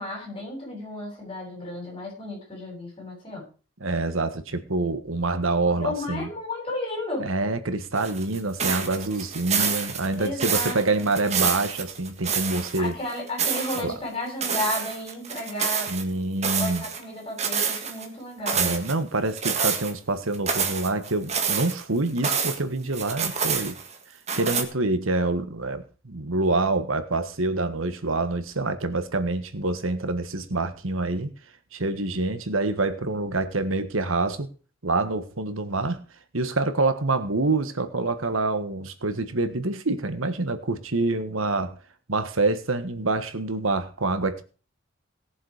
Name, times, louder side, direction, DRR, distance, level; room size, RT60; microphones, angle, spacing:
voice 1, 0.0-3.4 5.7-7.3 10.2-11.1 12.8-15.9 16.6-18.8, left 1 dB, 25° left, -1 dB, 7.9 m, -33 dB
voice 2, 3.8-6.3 7.2-12.9 13.8-13.9 15.9-16.8 18.5-23.8 24.4-31.3 31.7-34.5 34.8-36.0 36.3-41.8 42.1-44.4, right 2 dB, 85° right, 10 dB, 1.5 m, -26 dB
sound 1, 8.0-12.8 13.1-13.8 14.4-16.0 16.4-17.0 17.4-18.1 18.5-18.9 19.4-19.9 20.3-22.6 22.9-23.9 24.3-24.6, right 6 dB, 35° right, 1.7 m, -27 dB
17.5 x 7.3 x 5.0 m, 0.36 s
head